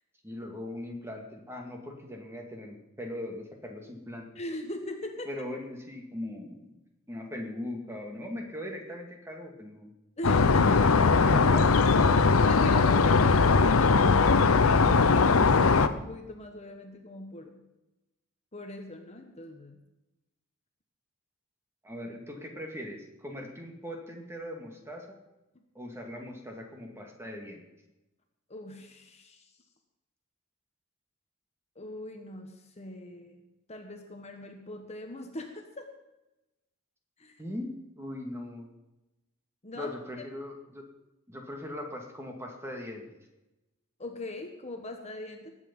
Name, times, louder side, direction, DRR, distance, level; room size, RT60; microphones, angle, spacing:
voice 1, 0.2-4.3 5.3-6.7 7.1-9.9 10.6-11.7 21.8-25.2 25.7-27.6 37.4-38.7 39.7-40.8 41.3-43.0, left 1 dB, 10° right, 2 dB, 2.1 m, -40 dB
voice 2, 4.3-5.3 10.2-10.8 12.3-17.6 18.5-19.8 28.5-29.5 31.7-35.8 37.2-37.3 39.6-39.9 44.0-45.5, left 1 dB, 30° left, 4 dB, 1.3 m, -41 dB
sound 1, 10.2-15.9, left 4 dB, 80° left, 0.7 m, -20 dB
19.5 x 8.4 x 5.4 m, 1.0 s
head